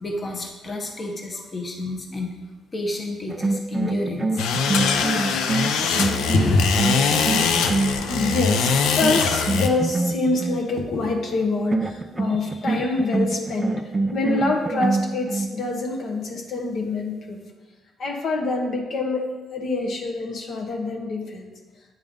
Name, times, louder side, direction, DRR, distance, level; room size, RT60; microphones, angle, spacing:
voice 1, 0.0-2.3 2.7-4.5, left 2 dB, 30° left, 1 dB, 0.9 m, -30 dB
sound 1, 3.3-8.5 9.0-10.6 11.7-15.6, right 3 dB, 25° right, 0.3 m, -26 dB
sound 2, 4.4-9.7, left 5 dB, 90° left, 0.5 m, -22 dB
voice 2, 6.3-6.7 8.1-17.4 18.0-19.2 19.5-21.5, left 3 dB, 65° left, 1 dB, 0.9 m, -25 dB
8.9 x 3.5 x 3.6 m, 1.2 s
cardioid pair, 90°, 0 cm